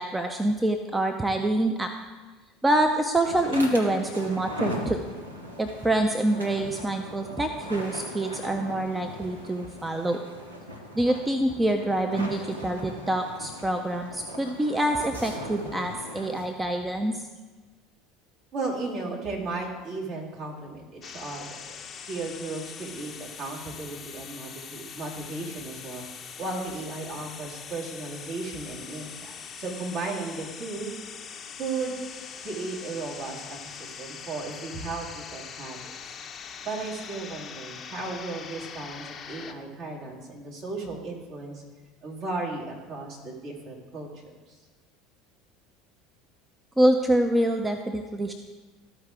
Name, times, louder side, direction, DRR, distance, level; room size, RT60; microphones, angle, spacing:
voice 1, 0.0-1.9 2.6-5.0 5.6-10.2 10.9-17.2 46.8-48.3, right 1 dB, 10° right, 5 dB, 0.6 m, -26 dB
sound 1, 3.2-16.5, equal, 85° right, 0.9 m, -39 dB
voice 2, 18.5-21.6 22.1-26.0 26.4-30.9 31.6-31.9 32.4-36.1 36.6-41.6 42.0-44.1 44.5-44.6, right 3 dB, 50° right, -3 dB, 2.2 m, -35 dB
sound 2, 21.0-39.5, left 7 dB, 35° left, 0.6 m, -42 dB
14.0 x 4.7 x 3.6 m, 1.3 s
figure-of-eight pair, 70°, 0 cm